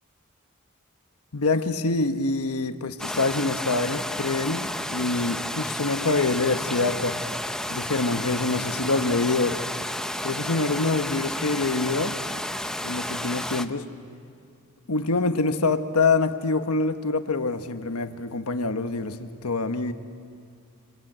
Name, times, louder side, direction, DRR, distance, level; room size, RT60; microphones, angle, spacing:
voice 1, 1.3-7.2 7.7-9.6 10.2-12.2 12.8-13.9 14.9-19.9, left 3 dB, 85° left, 8 dB, 1.2 m, -25 dB
sound 1, 3.0-13.7, left 1 dB, 5° left, 0.7 m, -31 dB
26.0 x 25.0 x 8.9 m, 2.3 s
head